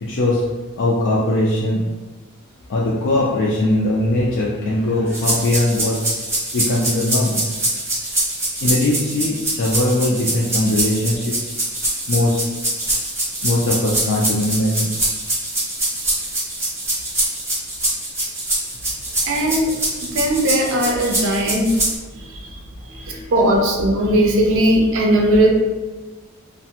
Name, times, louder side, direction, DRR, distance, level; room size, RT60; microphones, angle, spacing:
voice 1, 0.0-0.4 0.8-1.8 2.7-6.0 6.5-7.4 8.6-11.3 12.1-12.4 13.4-14.9 22.9-23.3, left 1 dB, 55° left, -5 dB, 0.4 m, -20 dB
sound 1, 5.1-22.0, right 1 dB, 10° right, 0.8 m, -24 dB
voice 2, 19.3-19.7 20.1-21.7 23.3-25.5, right 1 dB, 60° right, 0 dB, 0.4 m, -17 dB
2.5 x 2.1 x 2.7 m, 1.3 s
head